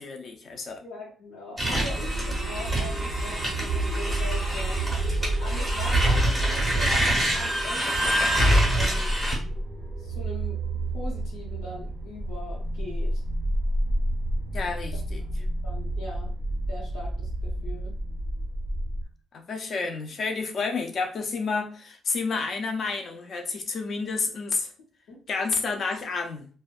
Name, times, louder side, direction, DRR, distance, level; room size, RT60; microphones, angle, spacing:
voice 1, 0.0-0.8 1.6-1.8 14.5-15.2 19.3-24.7 25.3-26.5, left 4 dB, 40° left, 4 dB, 0.4 m, -30 dB
voice 2, 0.8-4.8 5.4-9.2 10.0-10.7 10.9-13.2 15.3-16.3 16.7-17.9 25.1-25.2, left 2 dB, 90° left, -4 dB, 0.9 m, -41 dB
sound 1, 1.6-9.4, right 1 dB, ahead, 0.7 m, -26 dB
sound 2, 1.7-19.0, right 2 dB, 40° right, 0.5 m, -30 dB
2.6 x 2.1 x 2.3 m, 0.42 s
cardioid pair, 175°, 0 cm